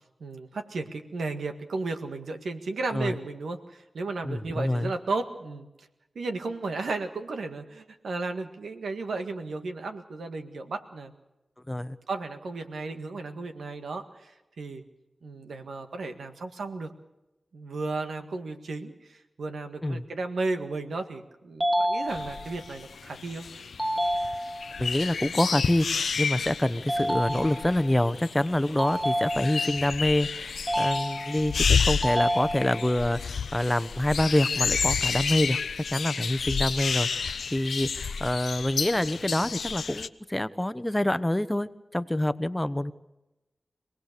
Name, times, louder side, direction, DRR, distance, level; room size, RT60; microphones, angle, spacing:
voice 1, 0.2-5.9 6.1-11.1 12.1-14.8 15.2-16.9 17.5-23.4, right 3 dB, 90° right, 7 dB, 1.7 m, -34 dB
voice 2, 4.2-4.9 11.7-12.0 19.8-20.0 24.8-35.6 35.9-42.9, left 1 dB, 15° left, 13 dB, 1.0 m, -26 dB
sound 1, 21.6-22.6 23.8-24.8 26.9-27.9 28.8-29.9 30.7-31.6 32.0-33.0, equal, 15° right, 2.3 m, -29 dB
sound 2, 22.1-40.1, left 5 dB, 90° left, 0.7 m, -31 dB
26.0 x 18.5 x 6.8 m, 0.96 s
cardioid pair, 40°, 0 cm